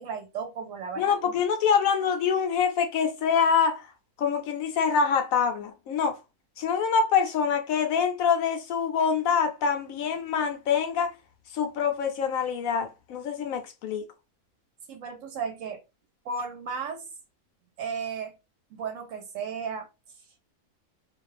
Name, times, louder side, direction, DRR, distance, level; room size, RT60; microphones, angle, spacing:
voice 1, 0.0-1.3 14.9-15.8 16.2-17.0 17.8-18.3 18.7-19.9, right 5 dB, 65° right, 0.9 m, -34 dB
voice 2, 1.0-3.9 4.2-6.2 6.6-11.1 11.5-14.0, left 6 dB, 70° left, 0.9 m, -25 dB
2.5 x 2.2 x 3.1 m
omnidirectional pair, 1.6 m